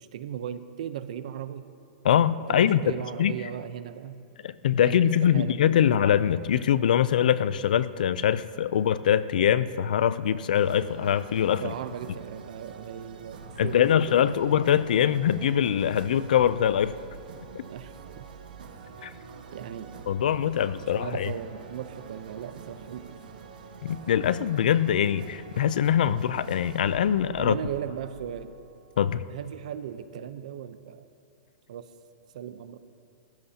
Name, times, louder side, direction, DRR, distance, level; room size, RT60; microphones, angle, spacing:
voice 1, 0.0-1.7 2.5-4.2 4.8-5.9 11.6-14.6 17.7-18.3 19.5-20.0 20.6-20.7 20.9-23.2 27.4-28.6 29.3-31.1 31.7-31.9 32.3-32.8, right 9 dB, 50° right, 11 dB, 0.7 m, -37 dB
voice 2, 2.0-2.8 3.2-3.3 4.4-11.6 13.6-16.9 19.0-19.1 20.1-21.3 23.8-27.6 29.0-29.2, left 9 dB, 70° left, 16 dB, 0.5 m, -23 dB
sound 1, 10.5-29.2, right 5 dB, 70° right, 1.5 m, -45 dB
23.0 x 15.5 x 2.9 m, 2.4 s
supercardioid pair, 180°, 5 cm